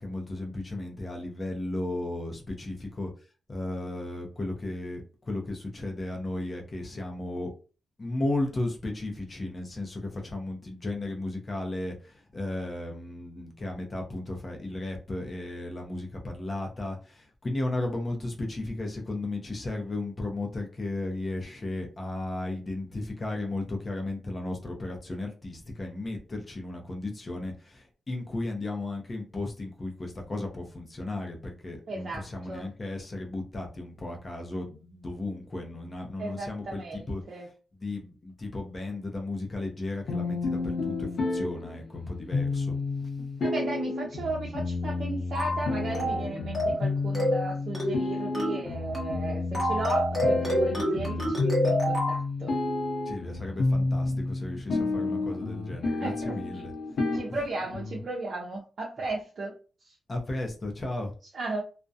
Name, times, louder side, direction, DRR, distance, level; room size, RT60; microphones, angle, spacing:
voice 1, 0.0-3.1 3.5-7.5 8.0-37.2 37.8-42.7 53.1-56.7 60.1-61.1, left 2 dB, 30° left, 2 dB, 0.6 m, -35 dB
voice 2, 31.9-32.7 36.2-37.5 43.4-52.5 56.0-56.4 57.1-59.5 59.8-59.9 61.3-61.6, right 2 dB, 50° right, -3 dB, 0.5 m, -35 dB
sound 1, 40.1-58.1, left 3 dB, 70° left, 0.7 m, -31 dB
sound 2, 45.3-45.6 45.9-46.2 46.5-46.8 47.1-47.4 47.7-48.0 48.3-48.6 48.9-49.2 49.5-52.2, equal, 5° left, 1.0 m, -27 dB
2.3 x 2.1 x 2.6 m, 0.35 s
wide cardioid pair, 125°, 0 cm